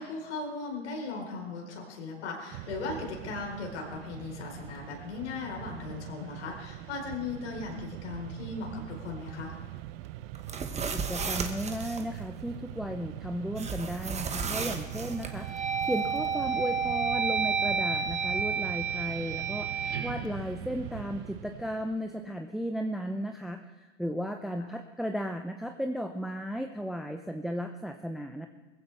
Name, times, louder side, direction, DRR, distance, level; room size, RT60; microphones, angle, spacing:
voice 1, 0.0-9.6, left 4 dB, 75° left, 0 dB, 4.5 m, -37 dB
Mechanisms, 2.5-22.0, right 15 dB, 55° right, 0.8 m, -42 dB
sound 1, 10.4-12.0 13.6-15.3, right 5 dB, 20° right, 1.4 m, -34 dB
voice 2, 10.9-23.6 24.0-28.5, equal, ahead, 5 dB, 0.6 m, -35 dB
sound 2, 14.2-14.7 15.2-21.3, right 6 dB, 75° right, 2.6 m, -31 dB
20.5 x 15.5 x 3.5 m, 1.2 s
hypercardioid pair, 95°, 35 cm